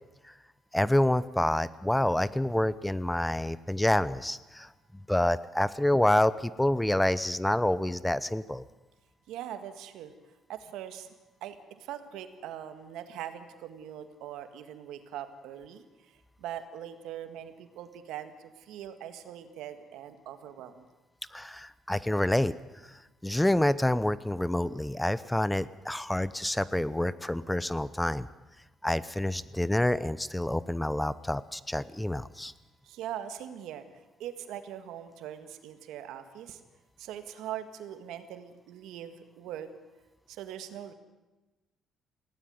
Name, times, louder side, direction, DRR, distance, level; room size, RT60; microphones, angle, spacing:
voice 1, 0.7-4.7 5.1-8.6 21.3-22.5 22.8-28.3 28.8-32.5, left 1 dB, 5° left, 17 dB, 0.7 m, -27 dB
voice 2, 9.3-10.1 10.5-11.1 11.4-16.1 16.4-20.9 32.8-33.9 34.2-36.6 37.0-39.7 40.3-40.9, right 10 dB, 85° right, 9 dB, 1.8 m, -41 dB
19.5 x 17.0 x 9.4 m, 1.1 s
cardioid pair, 80°, 0 cm